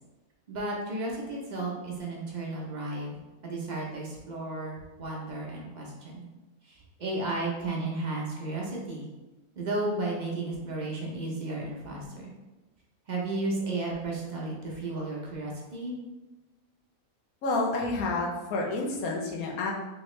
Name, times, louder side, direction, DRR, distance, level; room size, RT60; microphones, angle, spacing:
voice 1, 0.5-3.2 3.4-6.2 6.6-9.1 9.6-12.3 13.1-15.9, right 2 dB, 45° right, -3 dB, 0.6 m, -33 dB
voice 2, 17.4-19.7, left 2 dB, 85° left, -1 dB, 1.2 m, -29 dB
3.4 x 2.8 x 3.1 m, 1.1 s
omnidirectional pair, 1.5 m